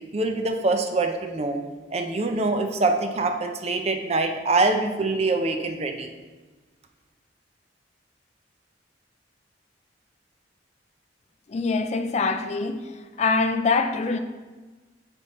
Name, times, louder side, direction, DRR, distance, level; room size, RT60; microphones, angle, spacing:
voice 1, 0.1-1.6 1.9-6.1, right 3 dB, 35° right, 0.5 m, -24 dB
voice 2, 11.5-14.2, left 4 dB, 40° left, 0.4 m, -24 dB
8.2 x 3.6 x 4.2 m
head